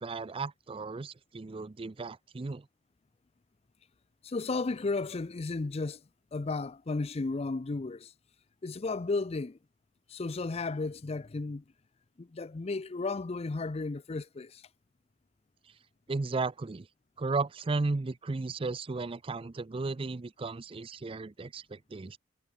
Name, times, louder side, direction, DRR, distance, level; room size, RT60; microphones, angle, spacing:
voice 1, 0.0-2.6 16.1-16.9 17.2-22.2, right 3 dB, 30° right, 0.5 m, -34 dB
voice 2, 4.2-6.0 6.3-8.1 8.6-9.6 10.1-11.6 12.2-14.6, left 3 dB, 35° left, 0.5 m, -34 dB
head